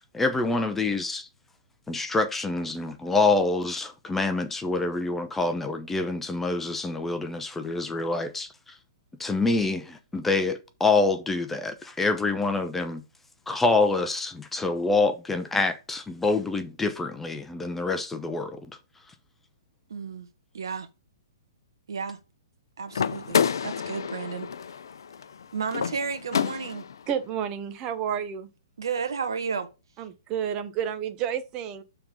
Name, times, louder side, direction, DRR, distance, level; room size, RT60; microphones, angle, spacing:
voice 1, 0.1-1.3 1.9-8.8 9.2-13.0 13.5-18.6, left 3 dB, 10° left, 0.8 m, -26 dB
voice 2, 19.9-20.3 20.5-20.9 21.9-22.2 22.8-24.5 25.5-26.8 28.8-29.7, right 6 dB, 70° right, 1.3 m, -32 dB
sound 1, 22.9-27.0, left 7 dB, 70° left, 0.5 m, -29 dB
voice 3, 27.1-28.5 30.0-31.8, right 8 dB, 30° right, 1.1 m, -30 dB
6.9 x 3.8 x 5.2 m
hypercardioid pair, 125°, 2 cm